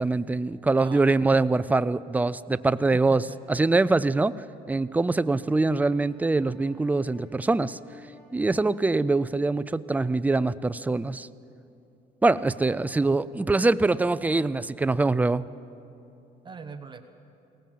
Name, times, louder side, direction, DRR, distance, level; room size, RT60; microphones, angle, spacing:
voice 1, 0.0-3.2 3.5-7.8 8.3-11.3 12.2-15.4, right 3 dB, 10° right, 15 dB, 0.4 m, -24 dB
voice 2, 2.9-3.4 16.4-17.0, right 5 dB, 25° right, 7 dB, 1.2 m, -41 dB
Wind instrument woodwind instrument, 5.3-9.6, left 3 dB, 70° left, 4.5 m, -55 dB
22.0 x 18.5 x 7.5 m, 2.8 s
cardioid pair, 110°, 17 cm